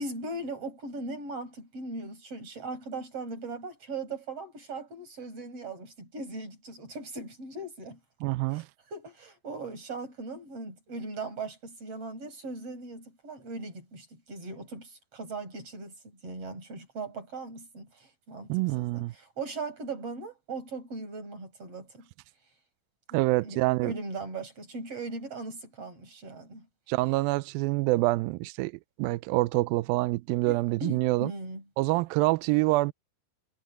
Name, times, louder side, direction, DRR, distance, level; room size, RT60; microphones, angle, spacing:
voice 1, 0.0-8.0 8.5-8.6 8.9-18.5 18.8-22.1 23.1-26.7 30.5-31.6, right 3 dB, 35° right, 7.6 m, -39 dB
voice 2, 8.2-8.7 18.5-19.1 23.1-23.9 26.9-28.7 29.0-31.3 31.8-32.9, right 20 dB, 90° right, 2.1 m, -26 dB
omnidirectional pair, 4.8 m